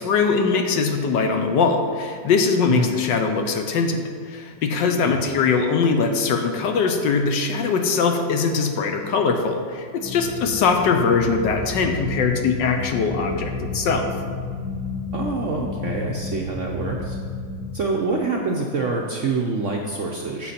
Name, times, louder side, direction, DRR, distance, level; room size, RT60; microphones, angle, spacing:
voice 1, 0.0-14.1, left 5 dB, 75° left, 5 dB, 1.4 m, -21 dB
sound 1, 10.0-17.8, left 3 dB, 50° left, 1.6 m, -31 dB
voice 2, 15.1-17.2 17.7-20.5, right 3 dB, 60° right, 0 dB, 0.8 m, -26 dB
9.0 x 7.2 x 4.2 m, 2.1 s
omnidirectional pair, 2.0 m